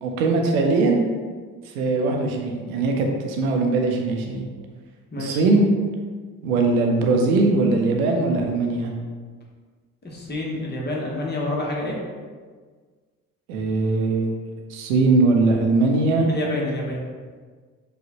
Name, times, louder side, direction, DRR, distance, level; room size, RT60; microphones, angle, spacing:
voice 1, 0.0-1.0 1.7-4.4 5.2-5.7 6.4-8.9 13.5-16.3, right 3 dB, 75° right, 2 dB, 0.7 m, -21 dB
voice 2, 10.0-12.0 16.3-17.0, left 1 dB, 25° left, -3 dB, 1.1 m, -28 dB
4.9 x 2.4 x 2.9 m, 1.5 s
figure-of-eight pair, 45°, 43 cm